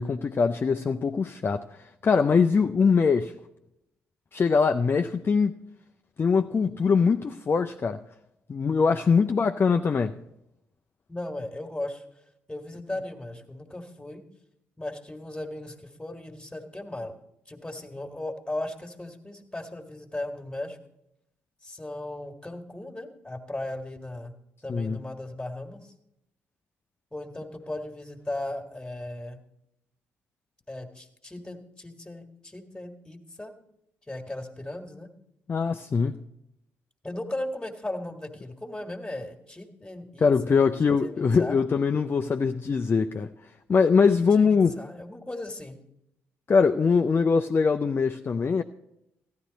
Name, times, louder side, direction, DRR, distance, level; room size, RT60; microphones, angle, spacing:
voice 1, 0.0-3.3 4.3-5.6 6.2-8.0 8.5-10.2 24.7-25.0 35.5-36.2 40.2-43.3 43.7-44.8 46.5-48.6, left 5 dB, 35° left, 0.4 m, -22 dB
voice 2, 11.1-12.0 12.5-14.2 14.8-17.1 17.5-20.8 21.6-24.3 24.6-25.9 27.1-29.4 30.7-33.5 34.1-35.1 37.0-40.6 41.0-41.6 44.2-45.8, left 1 dB, 10° left, 1.7 m, -37 dB
14.0 x 10.5 x 4.0 m
hypercardioid pair, 45°, 7 cm